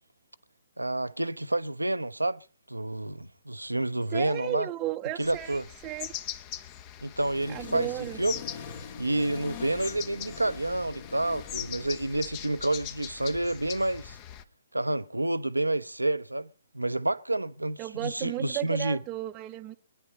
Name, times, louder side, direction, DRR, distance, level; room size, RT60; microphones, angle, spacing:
voice 1, 0.8-4.7 5.2-5.7 7.0-7.9 8.2-8.3 9.0-14.2 14.7-16.5 16.7-19.0, right 2 dB, 85° right, 0.7 m, -29 dB
voice 2, 4.1-5.6 5.8-6.1 7.5-8.2 17.8-19.8, right 15 dB, 25° right, 0.7 m, -34 dB
sound 1, 5.2-14.4, left 10 dB, 35° left, 0.9 m, -41 dB
Accelerating revving vroom, 7.2-12.5, left 6 dB, 50° left, 1.9 m, -43 dB
24.0 x 10.0 x 4.3 m
figure-of-eight pair, 120°, 0 cm